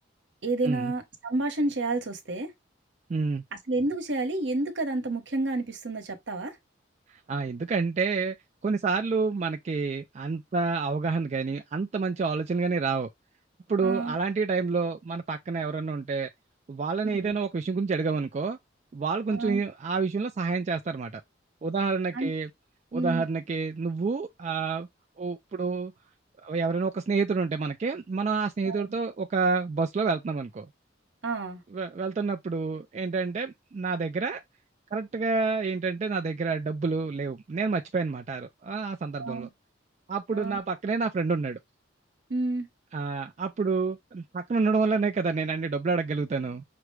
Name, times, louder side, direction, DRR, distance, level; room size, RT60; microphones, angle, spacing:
voice 1, 0.4-2.5 3.7-6.5 13.8-14.1 17.1-17.3 19.3-19.6 22.1-22.3 22.9-23.2 28.6-28.9 31.2-31.6 39.2-39.5 40.3-40.6 42.3-42.7, right 2 dB, 65° right, 1.1 m, -30 dB
voice 2, 3.1-3.4 7.1-8.4 8.6-13.1 13.7-16.3 16.7-18.6 18.9-21.2 21.6-22.5 22.9-24.9 25.2-25.9 26.4-30.7 31.7-34.4 34.9-39.5 40.1-41.6 42.9-46.6, right 4 dB, 35° right, 0.3 m, -28 dB
5.9 x 2.1 x 3.1 m
head